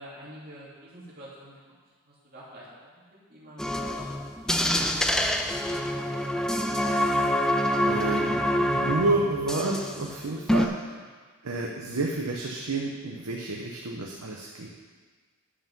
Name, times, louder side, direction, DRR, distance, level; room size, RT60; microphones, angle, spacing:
voice 1, 0.0-1.6 2.0-3.0 3.3-5.2 5.6-6.3, equal, 45° right, -7 dB, 2.7 m, -48 dB
sound 1, 3.6-10.1 10.4-10.7, equal, 5° left, 0.3 m, -26 dB
voice 2, 7.9-10.9 11.4-14.7, right 2 dB, 90° right, -2 dB, 1.0 m, -30 dB
10.0 x 5.7 x 5.5 m, 1.5 s
head